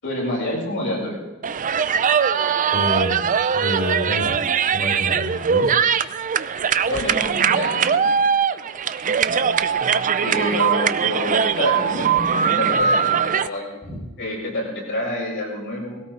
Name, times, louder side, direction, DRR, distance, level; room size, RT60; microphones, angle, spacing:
voice 1, 0.0-1.2 6.9-8.3 10.2-13.9 14.2-16.0, left 1 dB, 60° left, -3 dB, 7.7 m, -27 dB
sound 1, 1.4-13.5, right 7 dB, 35° right, 0.5 m, -21 dB
voice 2, 2.7-3.3 3.5-4.4 4.7-5.7 13.9-14.0, equal, 30° left, 1 dB, 4.4 m, -27 dB
20.0 x 17.5 x 3.9 m, 1.1 s
head